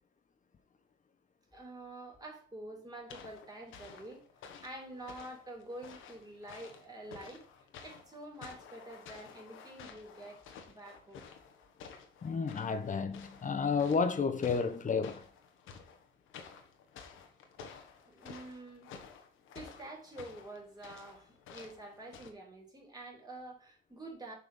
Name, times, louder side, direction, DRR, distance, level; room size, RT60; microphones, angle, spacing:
voice 1, 1.5-4.3 4.6-7.5 7.8-11.2 18.1-18.9 19.5-24.3, right 1 dB, 20° right, 3.5 m, -47 dB
sound 1, 3.1-22.3, left 6 dB, 85° left, 1.4 m, -53 dB
voice 2, 12.2-15.2, left 5 dB, 40° left, 1.2 m, -31 dB
7.5 x 4.7 x 5.6 m
cardioid pair, 90°, 20 cm